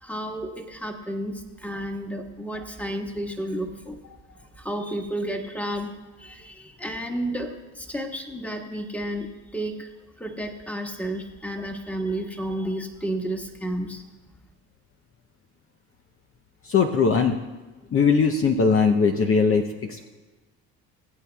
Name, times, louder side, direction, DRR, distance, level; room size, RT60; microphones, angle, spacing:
voice 1, 0.0-4.0 4.6-5.9 6.2-9.9 10.2-14.0, right 1 dB, 5° left, 3 dB, 1.6 m, -31 dB
voice 2, 16.6-17.3 17.9-20.1, left 5 dB, 40° left, 5 dB, 0.8 m, -20 dB
20.0 x 8.4 x 2.3 m, 1.2 s
supercardioid pair, 80°, 35 cm